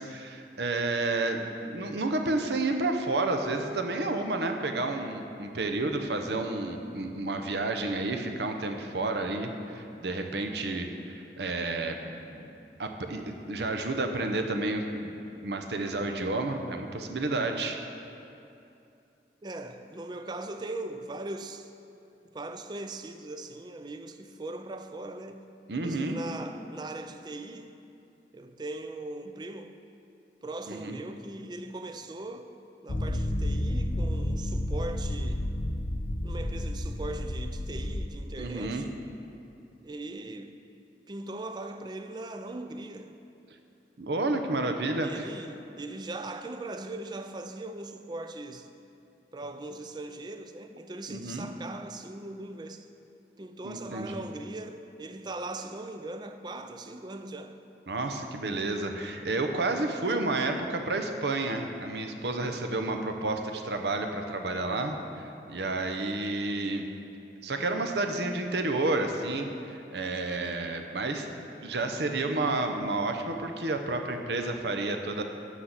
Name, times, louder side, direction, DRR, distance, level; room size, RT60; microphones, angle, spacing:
voice 1, 0.0-12.5 12.8-15.1 15.4-17.8 25.7-26.2 30.7-31.0 38.4-38.8 44.0-45.3 51.1-51.5 53.6-54.2 57.9-66.9 67.4-71.3 71.6-75.2, right 2 dB, 75° right, 0.8 m, -30 dB
voice 2, 19.4-21.7 22.3-25.5 25.8-27.8 28.3-29.8 30.4-32.5 32.8-35.5 36.2-38.9 39.8-40.6 41.1-43.2 45.0-48.7 49.3-52.9 53.4-57.6, right 2 dB, 25° right, 0.4 m, -40 dB
sound 1, 32.9-38.1, left 1 dB, 50° left, 0.7 m, -31 dB
12.0 x 4.1 x 7.9 m
head